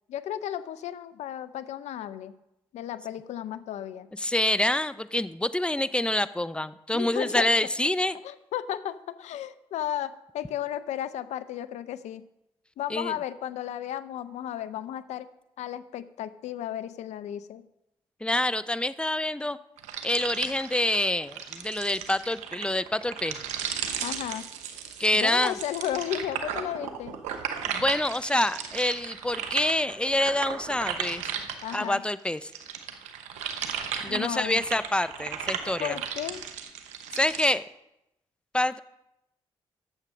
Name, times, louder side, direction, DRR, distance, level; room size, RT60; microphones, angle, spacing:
voice 1, 0.1-2.3 2.7-4.1 6.9-7.5 8.2-12.3 12.8-15.3 15.6-17.6 24.0-24.5 25.1-27.2 31.6-32.0 34.1-34.7 35.8-36.4, left 11 dB, 80° left, 15 dB, 0.6 m, -34 dB
voice 2, 4.2-8.2 12.9-13.1 18.2-19.6 20.0-23.4 25.0-25.6 27.7-31.3 31.7-32.5 34.0-36.0 37.1-37.6 38.5-38.8, left 1 dB, 10° left, 15 dB, 0.6 m, -26 dB
sound 1, 19.8-32.0 32.4-37.5, right 8 dB, 85° right, 0.8 m, -35 dB
9.9 x 7.5 x 6.3 m, 0.87 s
hypercardioid pair, 40°, 12 cm